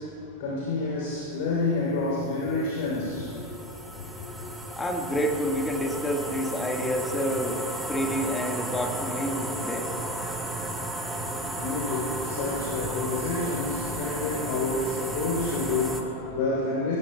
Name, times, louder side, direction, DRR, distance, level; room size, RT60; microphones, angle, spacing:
voice 1, 0.0-4.5 11.2-17.0, left 3 dB, 50° left, -4 dB, 3.3 m, -29 dB
sound 1, 1.6-16.0, right 1 dB, 10° right, 1.5 m, -34 dB
voice 2, 4.8-7.6 7.9-9.9, equal, 10° left, 2 dB, 1.6 m, -28 dB
18.0 x 17.5 x 2.3 m, 2.5 s
figure-of-eight pair, 90°, 0 cm